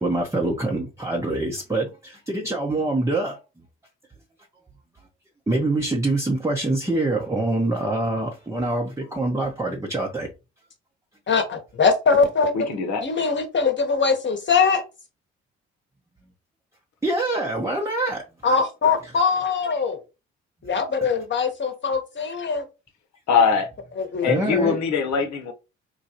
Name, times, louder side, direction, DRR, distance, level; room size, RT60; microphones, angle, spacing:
voice 1, 0.0-3.4 5.5-10.3 17.0-18.2 21.0-21.1 24.3-24.8, right 2 dB, 10° right, 0.8 m, -25 dB
voice 2, 11.3-12.5 13.0-14.8 18.4-20.0 20.6-22.6 24.0-24.4, left 5 dB, 35° left, 1.2 m, -22 dB
voice 3, 12.5-13.0 23.3-23.7 24.2-25.5, left 6 dB, 60° left, 1.0 m, -22 dB
4.4 x 2.3 x 2.9 m
hypercardioid pair, 50°, 32 cm